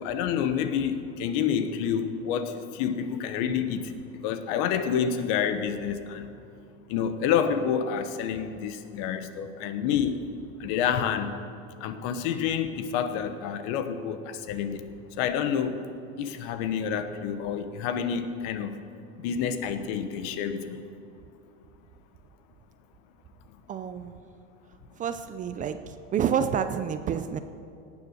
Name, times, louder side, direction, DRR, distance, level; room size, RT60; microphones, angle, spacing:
voice 1, 0.0-3.9 4.2-6.3 6.9-10.3 10.6-11.4 11.8-14.8 15.2-15.8 16.2-18.8 19.2-20.8, left 8 dB, 60° left, 10 dB, 1.1 m, -28 dB
voice 2, 23.7-24.3 25.0-27.4, right 8 dB, 25° right, 10 dB, 0.4 m, -29 dB
17.5 x 7.2 x 6.5 m, 2.7 s
supercardioid pair, 135°, 33 cm